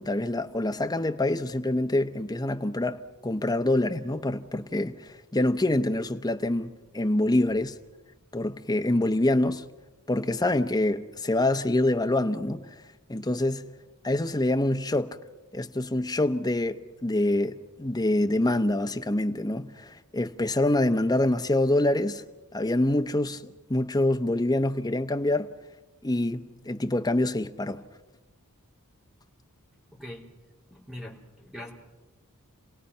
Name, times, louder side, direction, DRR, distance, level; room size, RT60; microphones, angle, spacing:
voice 1, 0.0-7.7 8.3-9.6 10.1-12.8 13.1-13.7 14.0-15.2 15.5-22.2 22.5-25.5 26.0-27.8, left 1 dB, 20° left, 0.8 m, -26 dB
voice 2, 29.9-30.3 30.7-31.7, left 1 dB, 5° right, 3.7 m, -42 dB
30.0 x 18.0 x 5.6 m
head